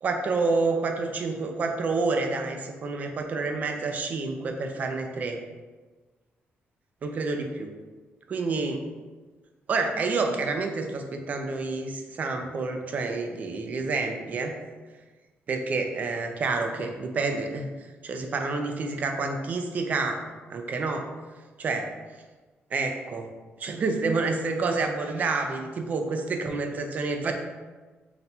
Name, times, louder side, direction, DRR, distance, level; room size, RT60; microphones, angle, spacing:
voice 1, 0.0-5.4 7.0-7.7 8.3-8.8 9.7-14.5 15.5-17.7 18.0-20.2 20.5-21.1 21.6-21.9 22.7-23.3 23.6-27.3, right 3 dB, 40° right, 4 dB, 0.4 m, -28 dB
4.1 x 2.2 x 4.1 m, 1.3 s
wide cardioid pair, 175°, 4 cm